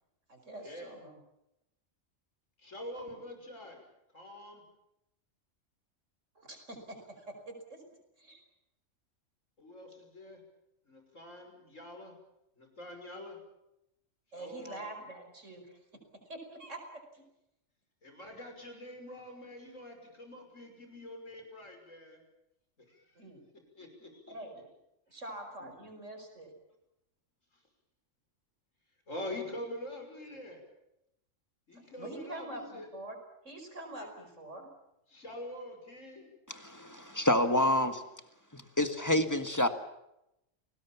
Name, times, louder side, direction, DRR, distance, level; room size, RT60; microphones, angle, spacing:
voice 1, 0.3-1.2 6.4-7.8 8.2-8.4 14.3-15.8 16.3-17.2 23.2-23.4 24.3-24.6 25.1-26.5 31.7-33.2 33.4-34.7, right 1 dB, 70° right, 5 dB, 5.5 m, -45 dB
voice 2, 2.6-3.8 4.1-4.6 9.6-10.4 10.9-12.1 12.6-13.4 14.3-14.8 18.0-22.2 22.9-23.2 23.8-24.3 25.6-25.7 29.1-30.6 31.7-32.9 34.0-34.1 35.1-36.3, left 1 dB, 75° left, 4 dB, 6.1 m, -45 dB
voice 3, 36.5-38.0 38.5-39.7, left 1 dB, 15° left, 8 dB, 1.8 m, -28 dB
29.0 x 19.5 x 7.3 m, 0.84 s
omnidirectional pair, 1.3 m